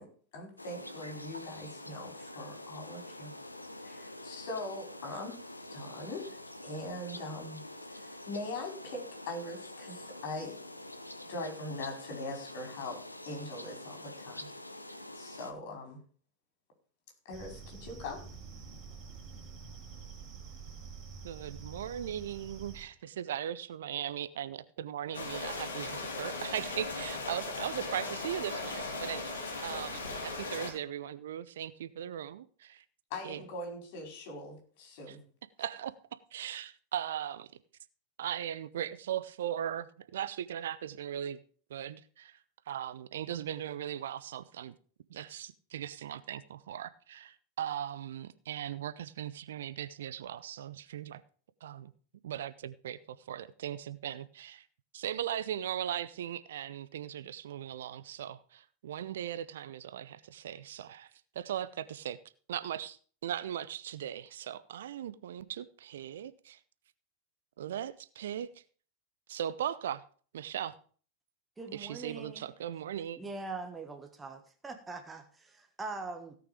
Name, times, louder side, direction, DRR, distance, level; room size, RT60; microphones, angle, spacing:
voice 1, 0.0-3.3 3.8-5.4 5.7-7.6 7.9-10.6 11.3-14.5 15.1-16.0 17.2-18.2 33.1-35.2, left 2 dB, 50° left, 5.0 m, -41 dB
sound 1, 0.6-15.5, left 1 dB, 85° left, 1.0 m, -46 dB
sound 2, 17.3-22.9, right 5 dB, 30° right, 3.3 m, -47 dB
voice 2, 21.2-32.8 33.2-33.4 35.1-35.2 35.6-35.9 36.3-37.5 38.2-41.4 41.7-42.4 42.7-44.7 45.1-51.2 51.6-51.9 52.2-54.7 54.9-61.1 61.3-62.2 62.5-63.0 63.2-66.6 67.6-68.5 69.3-70.0 70.3-70.7 71.7-73.2, right 10 dB, 60° right, 0.6 m, -38 dB
sound 3, 25.1-30.7, left 3 dB, 65° left, 2.8 m, -38 dB
voice 3, 71.6-72.4 73.2-76.4, right 3 dB, 15° right, 1.4 m, -42 dB
17.0 x 6.1 x 5.1 m
figure-of-eight pair, 90°, 0 cm